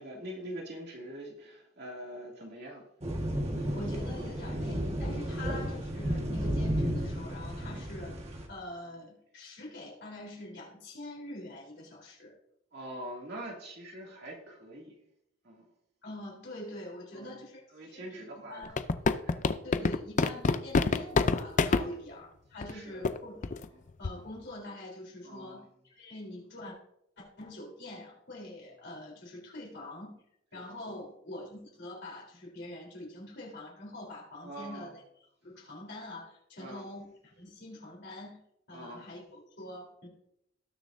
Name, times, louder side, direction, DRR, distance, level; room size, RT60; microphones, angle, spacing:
voice 1, 0.0-2.8 5.3-5.5 12.7-14.9 15.4-15.6 17.1-17.4 17.7-18.9 19.2-19.5 21.8-22.1 22.7-23.1 23.7-23.8 25.2-25.7 30.5-31.0 34.4-34.9 36.6-36.9 38.7-39.1, right 1 dB, 50° right, -1 dB, 2.5 m, -44 dB
sound 1, 3.0-8.5, equal, 30° right, 1.5 m, -33 dB
voice 2, 3.6-8.2 8.5-12.3 16.0-18.7 19.6-23.6 24.0-26.8 27.2-30.1 30.5-35.0 35.4-38.4 38.7-40.1, left 1 dB, 55° left, -2 dB, 3.6 m, -45 dB
sound 2, 18.6-21.8 22.6-22.7 23.0-23.2 23.4-23.6 24.0-24.3, left 4 dB, 35° left, 0.4 m, -26 dB
19.0 x 6.7 x 2.6 m, 0.79 s
head